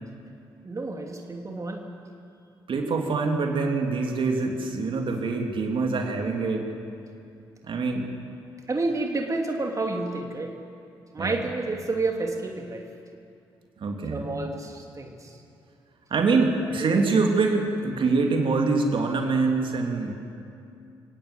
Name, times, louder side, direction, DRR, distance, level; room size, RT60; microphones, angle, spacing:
voice 1, 0.6-1.9 8.7-10.5 11.1-12.8 14.1-15.3 16.8-17.1, right 2 dB, 25° right, 2 dB, 2.9 m, -30 dB
voice 2, 2.7-6.7 7.7-8.1 11.2-11.4 13.8-14.3 16.1-20.1, right 4 dB, 45° right, 3 dB, 3.1 m, -24 dB
26.0 x 17.5 x 8.5 m, 2.5 s
figure-of-eight pair, 40°, 12 cm